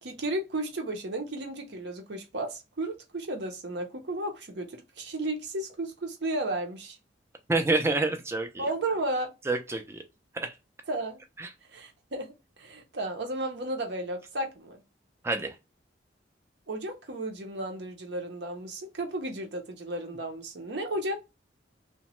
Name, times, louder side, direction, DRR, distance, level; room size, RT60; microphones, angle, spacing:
voice 1, 0.0-7.0 8.6-9.3 10.9-11.2 11.7-12.3 12.6-14.8 16.7-21.2, right 1 dB, 65° right, 0.6 m, -33 dB
voice 2, 7.5-8.7 9.5-10.0 10.3-10.5 11.4-11.5 15.2-15.6, right 2 dB, 15° right, 0.3 m, -28 dB
2.9 x 2.1 x 2.9 m
head